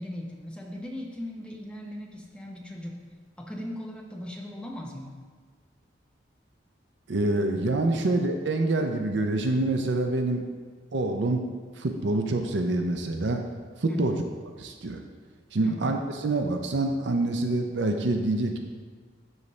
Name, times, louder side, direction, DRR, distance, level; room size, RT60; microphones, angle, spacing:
voice 1, 0.0-3.0 3.4-5.1 7.9-8.2 13.9-14.2 15.6-16.0, left 1 dB, 5° left, -1 dB, 0.7 m, -38 dB
voice 2, 7.1-10.5 10.9-11.5 11.8-13.4 13.8-14.2 14.6-15.0 15.5-18.6, right 2 dB, 65° right, 4 dB, 0.5 m, -26 dB
12.0 x 4.1 x 3.2 m, 1.5 s
head